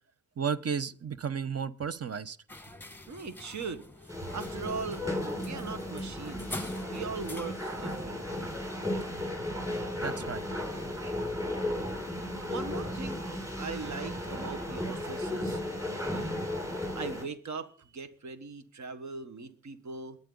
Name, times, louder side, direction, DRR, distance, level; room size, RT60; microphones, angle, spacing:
voice 1, 0.4-2.4 10.0-10.5, right 6 dB, 55° right, 14 dB, 1.0 m, -33 dB
sound 1, 2.5-8.0, left 2 dB, 5° left, 1.3 m, -45 dB
voice 2, 3.1-5.0 5.3-8.6 12.5-13.2 13.6-16.5 16.9-20.2, right 4 dB, 70° right, 9 dB, 1.4 m, -40 dB
sound 2, 4.1-17.2, left 1 dB, 10° right, 6.2 m, -35 dB
21.5 x 9.2 x 3.9 m, 0.41 s
cardioid pair, 50°, 30 cm